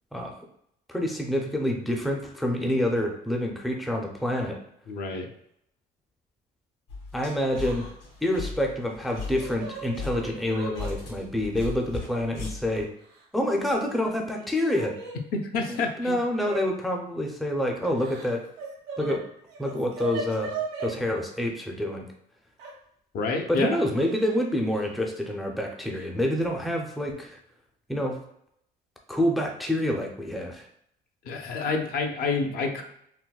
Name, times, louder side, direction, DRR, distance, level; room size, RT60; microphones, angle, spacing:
voice 1, 0.9-4.6 7.1-7.9 8.2-12.9 13.3-15.0 15.7-18.4 19.0-19.3 19.6-20.5 20.8-22.1 23.5-27.4 27.9-28.2 29.1-30.7, left 1 dB, ahead, 1 dB, 0.4 m, -27 dB
voice 2, 4.9-5.3 15.3-16.2 23.1-23.8 31.2-32.8, left 4 dB, 65° left, 4 dB, 0.5 m, -28 dB
sound 1, 6.9-12.8, left 3 dB, 85° left, 1.3 m, -37 dB
Yell / Crying sobbing, 7.6-7.9 8.2-8.4 9.1-10.9 11.9-12.0 13.0-13.5 13.9-15.2 16.3-16.6 17.8-19.1 19.5-20.9 22.6-22.7 23.9-24.4 24.6-24.8 25.9-26.0 26.5-26.8, right 4 dB, 75° right, 0.9 m, -38 dB
3.8 x 2.1 x 2.3 m, 0.72 s
cardioid pair, 110°, 17 cm